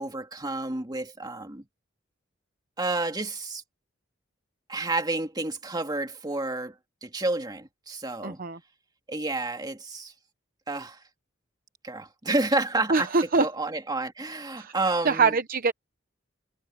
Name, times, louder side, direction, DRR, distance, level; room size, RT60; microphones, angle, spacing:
voice 1, 0.0-1.6 2.8-3.6 4.7-6.7 7.0-8.4 9.1-10.1 10.7-11.0 11.8-13.1 13.4-15.3, right 2 dB, 20° right, 2.3 m, -30 dB
voice 2, 8.2-8.6 12.9-13.5 14.6-14.7 15.0-15.7, right 4 dB, 45° right, 0.8 m, -23 dB
head